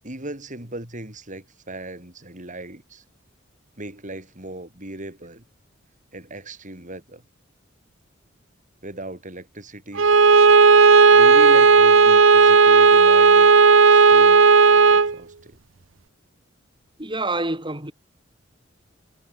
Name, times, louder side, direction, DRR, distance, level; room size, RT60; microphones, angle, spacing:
voice 1, 0.0-3.0 3.8-5.5 6.1-7.2 8.8-10.1 11.1-15.6, right 1 dB, 40° right, 6.8 m, -38 dB
Bowed string instrument, 10.0-15.1, right 4 dB, 80° right, 1.0 m, -13 dB
voice 2, 17.0-17.9, right 2 dB, 25° right, 6.4 m, -27 dB
head